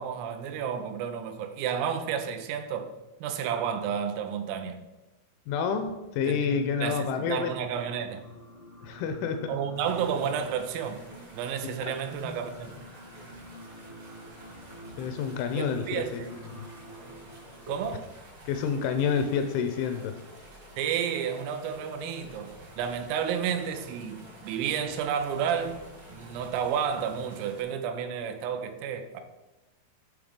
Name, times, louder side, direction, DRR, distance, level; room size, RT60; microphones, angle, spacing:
voice 1, 0.0-2.9 3.2-4.8 6.3-8.3 9.5-11.1 11.3-12.8 15.6-16.3 17.7-18.1 20.8-25.8 26.1-29.2, right 7 dB, 90° right, 3.3 m, -31 dB
voice 2, 5.5-7.5 8.8-9.6 15.0-16.6 18.5-20.2, left 6 dB, 85° left, 2.8 m, -29 dB
Singing, 7.0-17.7, right 1 dB, 60° left, 0.7 m, -49 dB
sound 1, 9.7-27.6, equal, 65° right, 1.0 m, -48 dB
8.6 x 3.5 x 5.0 m
omnidirectional pair, 5.7 m